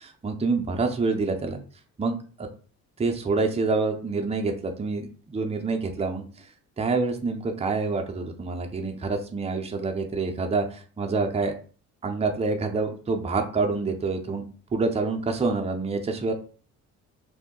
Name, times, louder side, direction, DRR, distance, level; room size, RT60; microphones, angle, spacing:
voice 1, 0.0-1.6 2.0-2.5 3.0-6.2 6.8-11.6 12.0-14.4 14.7-16.3, right 3 dB, 20° right, 4 dB, 0.6 m, -27 dB
2.7 x 2.1 x 3.7 m, 0.40 s
cardioid pair, 90°, 30 cm